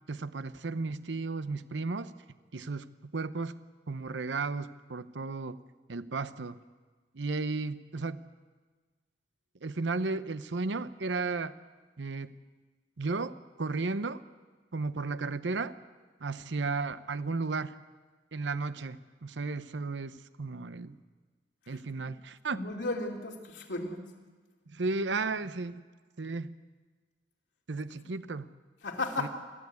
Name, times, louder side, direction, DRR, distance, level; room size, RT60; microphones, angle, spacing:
voice 1, 0.1-2.1 2.5-3.6 3.9-5.6 5.9-6.6 7.1-8.2 9.6-11.6 12.0-12.3 13.0-14.2 14.7-15.7 16.2-17.8 18.3-21.0 21.7-22.6 24.7-25.8 26.2-26.5 27.7-28.5 29.2-29.3, right 3 dB, 80° right, 13 dB, 0.8 m, -34 dB
voice 2, 22.5-24.0 28.8-29.3, left 2 dB, 75° left, 1 dB, 2.8 m, -34 dB
28.5 x 12.0 x 8.3 m, 1.4 s
head